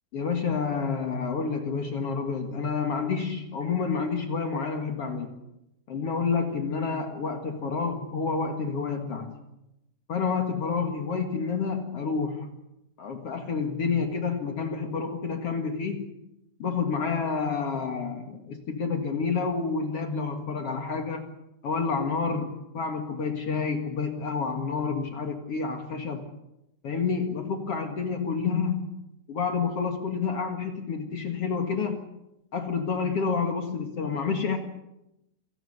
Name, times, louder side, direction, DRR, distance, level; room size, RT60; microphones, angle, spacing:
voice 1, 0.1-5.3 5.9-9.4 10.1-12.5 13.0-16.1 16.6-21.3 21.6-26.2 26.8-28.9 29.3-32.0 32.5-34.6, left 5 dB, 80° left, 4 dB, 1.3 m, -29 dB
28.5 x 18.5 x 6.7 m, 0.88 s
omnidirectional pair, 5.8 m